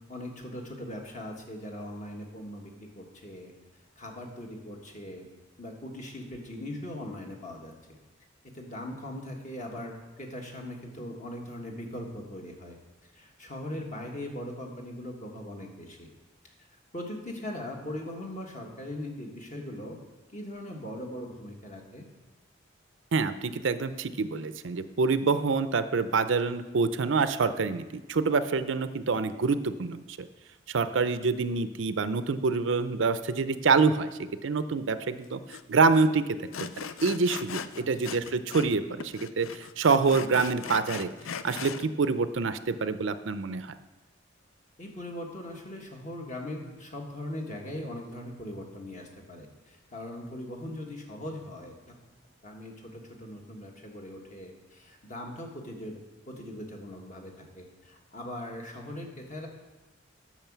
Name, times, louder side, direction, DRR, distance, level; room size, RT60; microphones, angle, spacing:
voice 1, 0.1-3.5 4.0-5.3 5.6-8.0 8.5-12.7 13.1-16.1 16.9-20.0 20.3-22.0 37.8-38.1 44.8-51.9 52.4-56.0 56.3-59.5, left 1 dB, 40° left, 1 dB, 1.5 m, -40 dB
voice 2, 23.1-30.3 30.7-36.3 36.8-41.1 41.4-43.7, right 4 dB, 70° right, 12 dB, 0.5 m, -26 dB
Sawing, 35.5-35.6 35.9-36.1 36.5-38.8 39.0-41.8, left 7 dB, 90° left, 0.5 m, -39 dB
8.8 x 6.3 x 7.3 m, 1.1 s
head